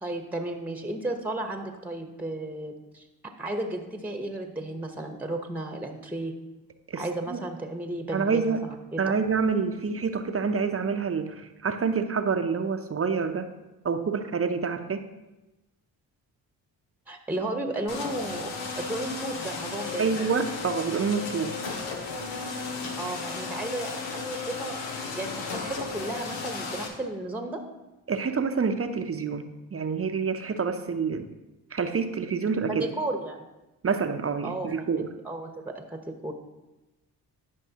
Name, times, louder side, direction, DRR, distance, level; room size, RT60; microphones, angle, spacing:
voice 1, 0.0-3.0 3.4-6.3 7.0-9.0 17.1-18.5 18.8-20.2 22.9-27.6 32.7-33.4 34.4-36.3, right 1 dB, 5° right, 5 dB, 1.0 m, -34 dB
voice 2, 6.9-7.4 8.1-8.7 9.0-13.5 13.8-15.0 20.0-21.6 28.1-31.3 31.7-32.9 33.8-35.1, right 5 dB, 30° right, 8 dB, 0.7 m, -27 dB
sound 1, 17.9-26.9, left 4 dB, 85° left, 1.0 m, -34 dB
12.0 x 5.3 x 2.9 m, 1.0 s
supercardioid pair, 45°, 44 cm